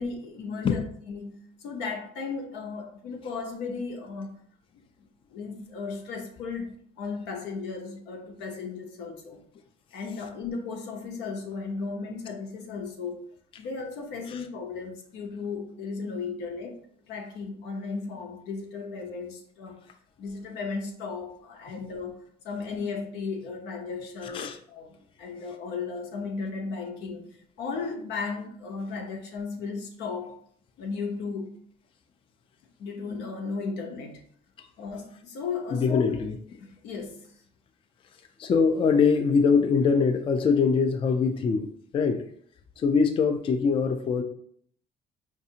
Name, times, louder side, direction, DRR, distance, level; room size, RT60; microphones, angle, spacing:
voice 1, 0.0-1.3 1.6-4.3 5.0-9.4 9.9-13.2 13.6-16.7 17.1-19.8 20.2-22.2 22.4-24.9 25.2-27.2 27.6-30.3 30.8-31.5 32.8-34.2 34.8-36.1 36.8-37.3, left 4 dB, 85° left, 2 dB, 0.8 m, -35 dB
voice 2, 24.2-24.6 34.6-34.7 35.7-36.4 38.4-42.2 42.8-44.2, left 5 dB, 30° left, 7 dB, 0.3 m, -23 dB
4.8 x 2.6 x 2.7 m, 0.64 s
cardioid pair, 110°, 17 cm